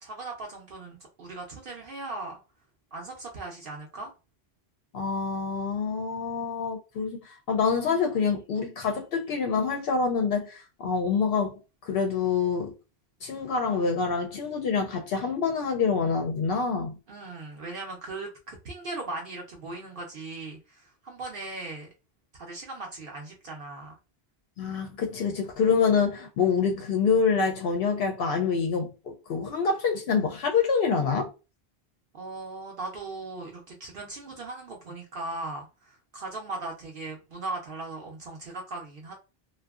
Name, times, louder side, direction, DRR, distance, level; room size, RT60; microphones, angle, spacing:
voice 1, 0.0-2.4 2.9-4.1 17.1-21.9 22.4-23.9 32.1-39.1, right 2 dB, 60° right, 0.8 m, -38 dB
voice 2, 4.9-11.6 11.9-12.7 13.2-17.0 24.6-31.3, left 5 dB, 70° left, 0.7 m, -26 dB
2.6 x 2.3 x 2.3 m
omnidirectional pair, 1.1 m